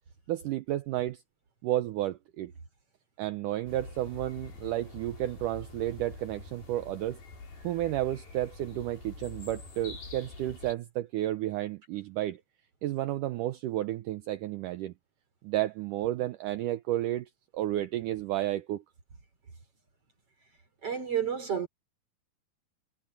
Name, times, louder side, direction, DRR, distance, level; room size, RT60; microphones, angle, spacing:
voice 1, 0.3-1.2 1.6-2.5 3.2-7.2 7.6-12.4 12.8-14.9 15.4-18.8, right 14 dB, 75° right, 2.2 m, -32 dB
sound 1, 3.7-10.7, left 3 dB, 85° left, 8.3 m, -46 dB
voice 2, 20.8-21.7, right 8 dB, 40° right, 4.3 m, -30 dB
omnidirectional pair, 4.1 m